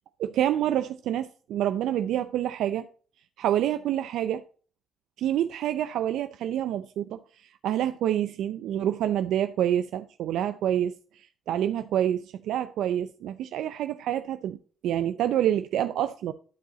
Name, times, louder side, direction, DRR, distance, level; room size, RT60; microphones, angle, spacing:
voice 1, 0.2-2.9 3.4-4.4 5.2-7.2 7.6-10.9 11.5-14.6 14.8-16.3, right 11 dB, 80° right, 0.5 m, -27 dB
11.5 x 4.7 x 4.1 m
cardioid pair, 90°, 0 cm